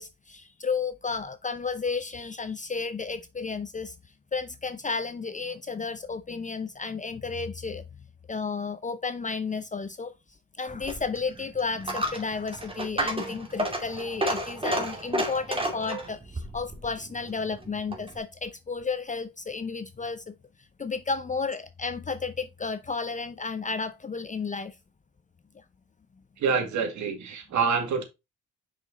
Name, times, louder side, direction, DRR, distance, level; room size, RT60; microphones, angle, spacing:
voice 1, 0.0-3.9 4.3-7.8 8.3-10.1 10.6-20.3 20.8-24.8, left 4 dB, 25° left, 0.6 m, -32 dB
Coin (dropping), 10.7-18.2, right 1 dB, 20° right, 2.3 m, -32 dB
voice 2, 26.4-28.0, right 6 dB, 70° right, 2.3 m, -26 dB
5.9 x 5.1 x 3.9 m
cardioid pair, 90°, 30 cm